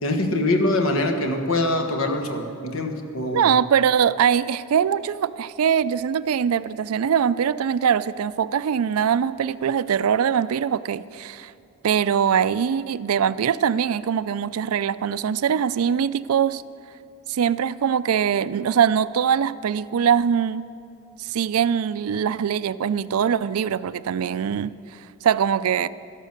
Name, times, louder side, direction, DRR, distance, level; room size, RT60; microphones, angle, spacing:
voice 1, 0.0-3.5, left 2 dB, 70° left, 5 dB, 1.3 m, -23 dB
voice 2, 3.3-11.5 11.8-16.6 17.3-20.7 21.2-25.9, right 8 dB, 80° right, 17 dB, 0.4 m, -22 dB
13.5 x 11.5 x 6.6 m, 2.5 s
head